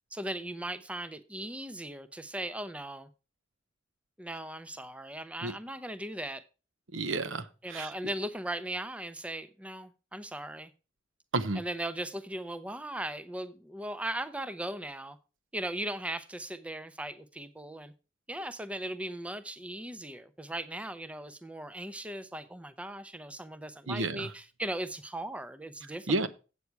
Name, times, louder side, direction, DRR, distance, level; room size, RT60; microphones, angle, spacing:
voice 1, 0.1-3.1 4.2-6.4 7.6-10.7 11.5-15.2 15.5-17.9 18.3-26.1, right 1 dB, 5° right, 0.5 m, -38 dB
voice 2, 6.9-7.4 7.7-7.9 11.3-11.6 23.9-24.3 26.1-26.3, right 2 dB, 80° right, 0.9 m, -30 dB
8.4 x 8.1 x 4.6 m
head